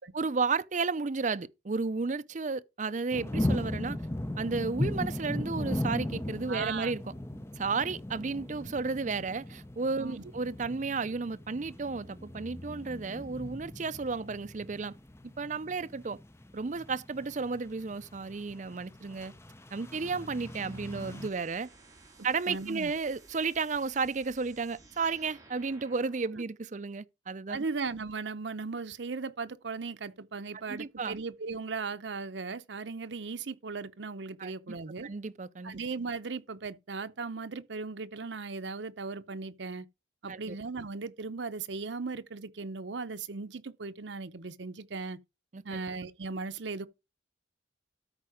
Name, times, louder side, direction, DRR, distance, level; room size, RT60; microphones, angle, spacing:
voice 1, 0.1-4.0 4.4-7.0 7.6-14.9 15.4-16.2 16.5-19.3 19.7-21.7 22.2-27.6 30.7-31.2 34.4-34.8 35.0-35.8 40.3-40.5 45.5-45.8, right 4 dB, 40° right, 0.5 m, -33 dB
sound 1, 3.1-21.3, left 1 dB, 15° left, 0.7 m, -38 dB
voice 2, 6.5-6.9 10.0-10.2 22.5-22.9 27.5-35.1 35.6-39.9 40.2-45.2 45.6-46.9, right 4 dB, 70° right, 0.7 m, -37 dB
sound 2, 19.9-26.3, right 3 dB, 20° right, 2.2 m, -57 dB
12.5 x 4.8 x 4.9 m
head